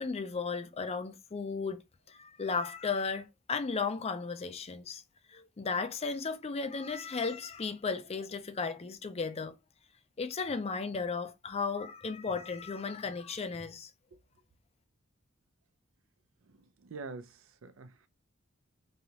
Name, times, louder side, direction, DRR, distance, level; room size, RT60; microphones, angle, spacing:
voice 1, 0.0-1.8 2.1-5.0 5.3-9.5 10.2-13.9, left 4 dB, 30° left, 0.4 m, -35 dB
voice 2, 16.5-18.1, right 4 dB, 80° right, 0.5 m, -46 dB
3.1 x 2.9 x 2.8 m
head